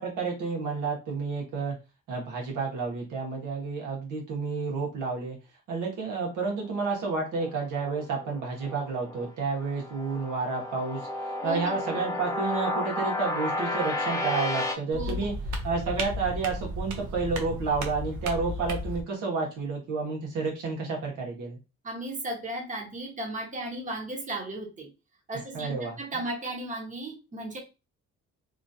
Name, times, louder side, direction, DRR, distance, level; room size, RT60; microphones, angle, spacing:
voice 1, 0.0-1.8 2.1-5.4 5.7-15.3 15.6-21.6 25.5-26.0, right 4 dB, 85° right, -1 dB, 1.3 m, -30 dB
sound 1, 7.0-9.3 9.7-14.7, left 2 dB, 10° left, 1.0 m, -32 dB
voice 2, 11.4-11.7 14.9-15.3 21.8-24.9 25.3-27.6, right 2 dB, 25° right, -1 dB, 1.2 m, -35 dB
sound 2, 14.9-19.0, equal, 70° right, 0.8 m, -34 dB
3.0 x 2.4 x 2.7 m, 0.29 s
cardioid pair, 90°, 30 cm